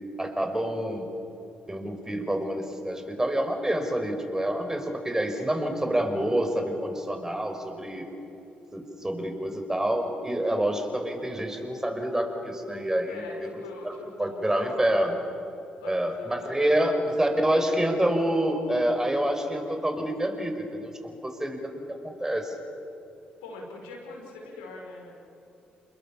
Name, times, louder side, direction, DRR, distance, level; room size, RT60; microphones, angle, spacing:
voice 1, 0.2-1.1 1.7-8.0 8.7-13.2 14.2-15.2 15.8-21.6 21.9-22.5, right 1 dB, 15° right, 5 dB, 5.2 m, -27 dB
voice 2, 13.1-15.0 15.7-16.8 17.2-17.8 23.4-25.1, left 2 dB, 90° left, 0 dB, 5.2 m, -43 dB
28.5 x 21.5 x 7.3 m, 2.8 s
hypercardioid pair, 50°, 4 cm